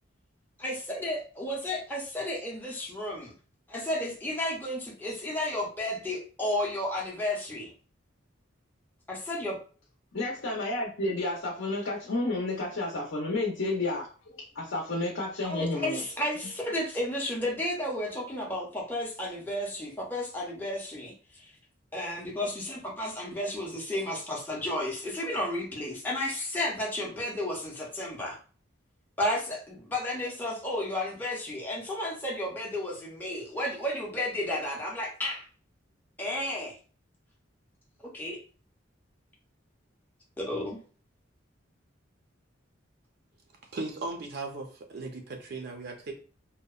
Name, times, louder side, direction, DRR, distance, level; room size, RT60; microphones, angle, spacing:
voice 1, 0.6-3.3 3.7-7.7 9.1-9.6 15.4-21.5 21.9-28.4 29.2-35.5 36.2-36.8 38.1-38.4 40.4-40.8, left 1 dB, 10° left, -3 dB, 0.5 m, -32 dB
voice 2, 10.1-16.0, left 2 dB, 75° left, -3 dB, 0.6 m, -31 dB
voice 3, 43.7-46.1, right 3 dB, 55° right, 3 dB, 0.4 m, -37 dB
2.7 x 2.0 x 2.3 m, 0.39 s
head